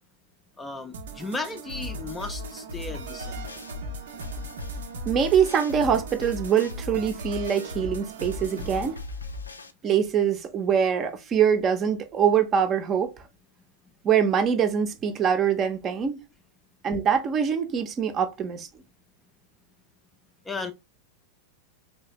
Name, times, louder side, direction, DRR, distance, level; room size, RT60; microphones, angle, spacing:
voice 1, 0.6-3.5 20.5-20.7, left 3 dB, 15° left, 0.5 m, -35 dB
sound 1, 0.9-8.9, right 5 dB, 60° right, 0.7 m, -40 dB
sound 2, 1.7-9.7, left 3 dB, 80° left, 0.4 m, -37 dB
voice 2, 5.1-9.0 9.8-13.1 14.0-16.2 16.8-18.7, right 7 dB, 30° right, 0.7 m, -24 dB
3.3 x 3.1 x 2.9 m
figure-of-eight pair, 90°, 0 cm